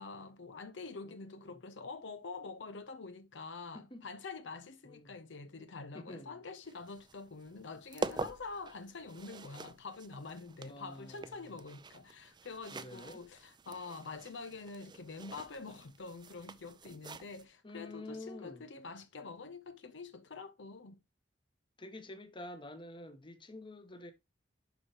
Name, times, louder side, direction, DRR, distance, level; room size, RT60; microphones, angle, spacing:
voice 1, 0.0-21.0, left 4 dB, 70° left, 0.7 m, -46 dB
voice 2, 1.0-1.6 3.7-4.0 4.8-5.1 5.9-6.4 10.6-11.5 12.7-13.2 17.6-18.7 21.8-24.1, left 1 dB, 25° left, 1.1 m, -48 dB
sound 1, 6.6-17.4, right 3 dB, 25° right, 0.5 m, -46 dB
11.5 x 4.5 x 3.0 m
head